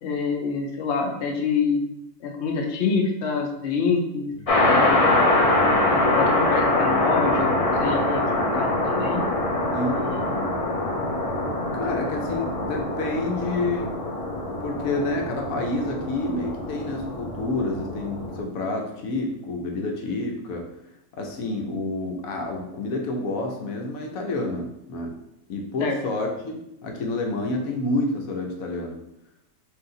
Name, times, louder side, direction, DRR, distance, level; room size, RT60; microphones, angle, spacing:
voice 1, 0.0-1.8 2.2-4.3 4.6-5.1 5.8-9.2 10.0-10.6 25.8-26.0, left 5 dB, 60° left, 1 dB, 0.9 m, -27 dB
sound 1, 4.5-18.4, left 2 dB, 40° left, 0.5 m, -24 dB
voice 2, 11.7-13.9 14.6-20.7 21.1-25.2 25.5-29.0, left 2 dB, 80° left, 2 dB, 1.1 m, -29 dB
4.3 x 2.7 x 3.8 m, 0.84 s
omnidirectional pair, 1.5 m